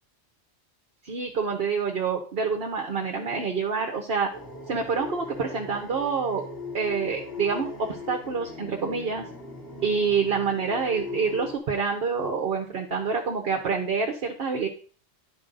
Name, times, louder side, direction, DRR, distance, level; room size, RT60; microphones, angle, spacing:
voice 1, 1.0-4.3 4.7-6.4 6.7-9.3 9.8-14.7, right 5 dB, 60° right, 2 dB, 1.1 m, -27 dB
sound 1, 4.3-11.6, left 3 dB, 60° left, 2.1 m, -39 dB
10.5 x 4.7 x 3.8 m, 0.42 s
omnidirectional pair, 1.1 m